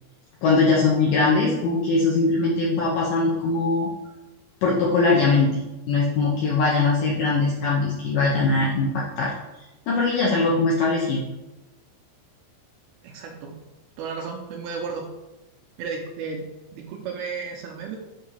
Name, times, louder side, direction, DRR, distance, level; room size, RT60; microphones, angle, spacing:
voice 1, 0.4-3.9 4.6-5.5 5.9-9.3 9.9-11.2, left 3 dB, 80° left, -4 dB, 2.0 m, -21 dB
voice 2, 13.0-13.6 14.0-15.1 15.8-18.0, right 5 dB, 80° right, 1 dB, 2.4 m, -33 dB
8.1 x 2.8 x 5.5 m, 1.0 s
omnidirectional pair, 5.0 m